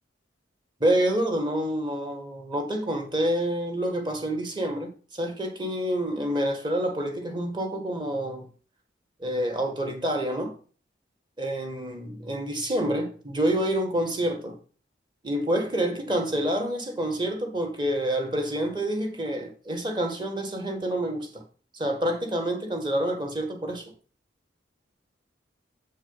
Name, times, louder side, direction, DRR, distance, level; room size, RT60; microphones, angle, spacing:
voice 1, 0.8-8.5 9.2-10.5 11.4-14.6 15.2-21.4 21.7-23.8, right 1 dB, 25° right, 1.6 m, -28 dB
7.9 x 4.7 x 5.6 m
head